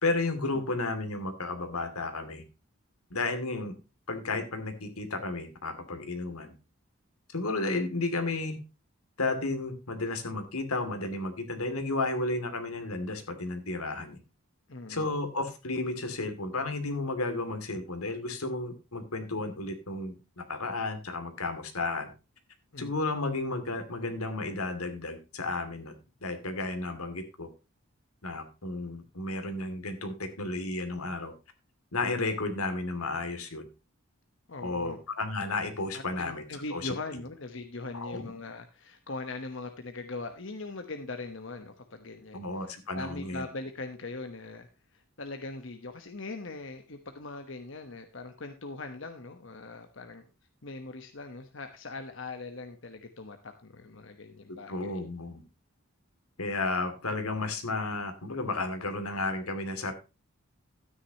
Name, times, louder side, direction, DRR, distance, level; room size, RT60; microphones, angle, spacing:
voice 1, 0.0-2.4 3.1-3.7 4.1-6.5 7.3-8.6 9.2-14.2 14.9-22.1 22.8-25.9 26.2-27.5 28.2-31.3 31.9-33.6 34.6-36.4 36.7-36.9 37.9-38.3 42.3-43.4 54.7-55.4 56.4-59.9, left 2 dB, 90° left, 8 dB, 2.5 m, -33 dB
voice 2, 14.7-15.1 22.7-22.9 34.5-35.0 35.9-42.4 42.9-50.2 50.6-54.7, left 3 dB, 60° left, 7 dB, 1.1 m, -41 dB
13.0 x 9.7 x 2.9 m, 0.29 s
head